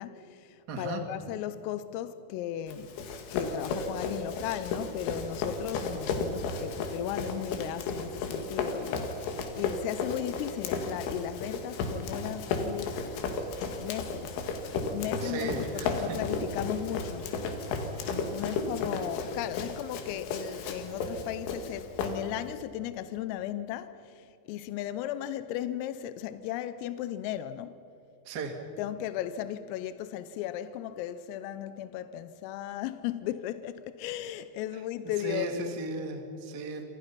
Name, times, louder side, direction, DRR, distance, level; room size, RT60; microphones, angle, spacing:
voice 1, 0.0-2.9 3.3-13.5 13.8-17.4 18.1-27.8 28.8-35.5, left 12 dB, 85° left, 3.4 m, -36 dB
voice 2, 0.7-1.0 15.2-16.2 18.4-18.5 28.2-28.6 34.7-34.8 35.2-36.8, right 3 dB, 50° right, 1.1 m, -36 dB
Run, 2.7-22.5, left 3 dB, 70° left, 4.3 m, -34 dB
27.5 x 27.5 x 5.9 m
omnidirectional pair, 5.9 m